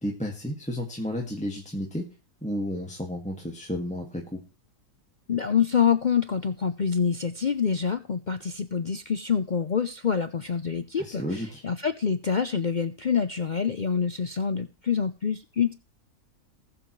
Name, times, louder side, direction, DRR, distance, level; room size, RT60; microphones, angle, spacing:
voice 1, 0.0-2.0 2.4-4.4 11.0-11.6, equal, 5° left, -1 dB, 1.9 m, -32 dB
voice 2, 5.3-11.2 11.6-15.7, left 7 dB, 65° left, 10 dB, 0.4 m, -26 dB
20.0 x 7.0 x 3.2 m, 0.33 s
omnidirectional pair, 1.7 m